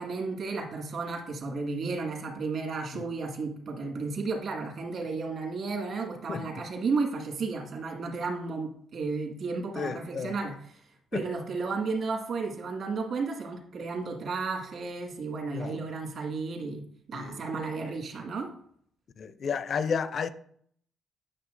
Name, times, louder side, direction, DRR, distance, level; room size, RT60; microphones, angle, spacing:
voice 1, 0.0-16.8 17.1-18.5, right 4 dB, 65° right, 1.8 m, -33 dB
voice 2, 6.3-6.6 9.7-10.4 11.1-11.3 15.5-15.8 17.1-17.4 19.2-20.3, left 6 dB, 55° left, 0.5 m, -32 dB
9.9 x 6.1 x 2.5 m
cardioid pair, 90°, 0 cm